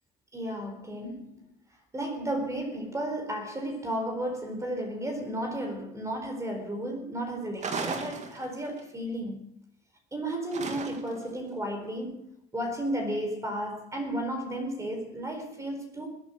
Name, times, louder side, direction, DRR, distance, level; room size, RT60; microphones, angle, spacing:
voice 1, 0.3-1.3 1.9-9.4 10.1-12.2 12.5-16.1, right 1 dB, 20° right, 4.4 m, -33 dB
sound 1, 7.6-8.8 10.5-11.3, right 4 dB, 45° right, 2.5 m, -35 dB
21.0 x 8.9 x 6.5 m
cardioid pair, 110°, 17 cm